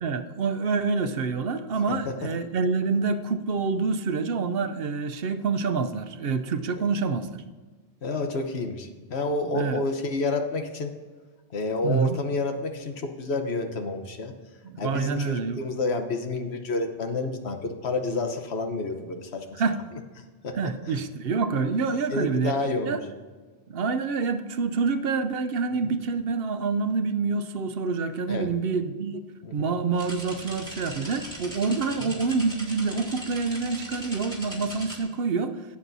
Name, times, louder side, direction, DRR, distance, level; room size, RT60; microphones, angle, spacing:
voice 1, 0.0-7.4 9.5-9.8 11.8-12.2 14.6-15.6 19.6-19.8 20.6-22.5 22.9-23.0 23.7-29.2 29.5-35.6, right 4 dB, 65° right, 9 dB, 0.9 m, -27 dB
voice 2, 1.9-2.3 8.0-10.9 11.5-14.3 14.8-19.6 20.4-20.7 22.1-23.0 25.8-25.9 28.3-28.5 29.4-29.7 32.0-32.1, left 3 dB, 70° left, 6 dB, 1.3 m, -29 dB
sound 1, 29.9-35.0, equal, 5° left, 3.0 m, -40 dB
17.0 x 8.4 x 2.7 m, 1.4 s
omnidirectional pair, 1.1 m